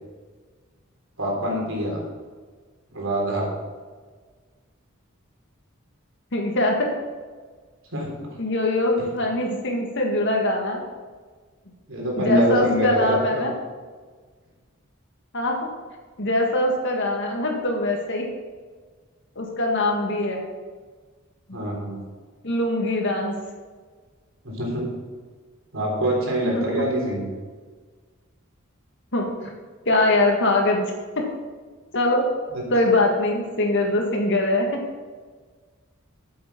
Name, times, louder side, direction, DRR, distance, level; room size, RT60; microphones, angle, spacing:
voice 1, 1.2-2.0 2.9-3.5 7.9-8.3 9.0-9.1 11.9-13.5 21.5-22.0 24.4-24.9 25.7-27.3 32.5-32.6, right 1 dB, 70° right, -2 dB, 3.6 m, -25 dB
voice 2, 6.3-6.9 8.4-10.8 12.2-13.5 15.3-15.6 16.2-18.3 19.4-20.5 21.5-21.6 22.4-23.3 26.5-26.8 29.1-29.5 29.9-31.3 31.9-32.3 32.7-34.8, left 2 dB, 60° left, 1 dB, 1.9 m, -22 dB
8.9 x 7.8 x 5.3 m, 1.5 s
head